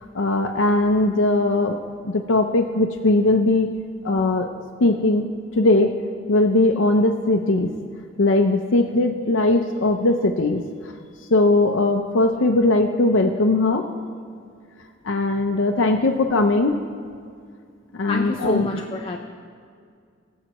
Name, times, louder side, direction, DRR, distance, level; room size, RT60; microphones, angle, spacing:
voice 1, 0.2-1.7 2.0-3.7 4.0-4.5 4.8-5.3 5.6-5.9 6.3-7.7 8.2-10.6 11.3-13.8 15.1-16.7 18.0-18.7, left 2 dB, 70° left, 3 dB, 0.6 m, -19 dB
voice 2, 18.1-19.2, left 2 dB, 25° left, 2 dB, 0.5 m, -26 dB
22.0 x 7.4 x 3.0 m, 2.2 s
head